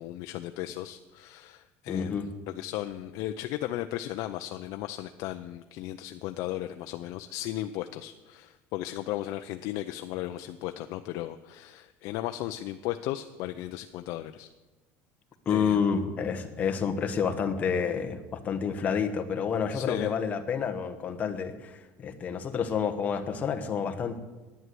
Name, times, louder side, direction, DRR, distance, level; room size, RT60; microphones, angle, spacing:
voice 1, 0.0-14.5 15.5-15.8 19.7-20.1, left 14 dB, 55° left, 7 dB, 0.5 m, -36 dB
voice 2, 1.9-2.3 15.5-24.2, left 6 dB, 25° left, 6 dB, 1.0 m, -29 dB
11.0 x 9.5 x 7.7 m, 1.2 s
cardioid pair, 175°, 6 cm